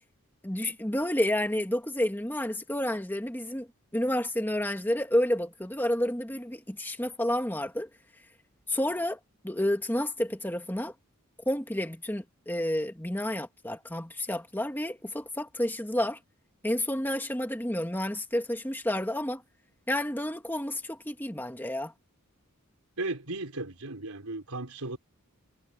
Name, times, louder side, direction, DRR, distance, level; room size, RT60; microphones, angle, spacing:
voice 1, 0.4-3.7 3.9-7.9 8.7-9.2 9.4-10.9 11.4-16.2 16.6-19.4 19.9-21.9, left 1 dB, 10° left, 1.7 m, -30 dB
voice 2, 23.0-25.0, right 2 dB, 80° right, 4.3 m, -35 dB
head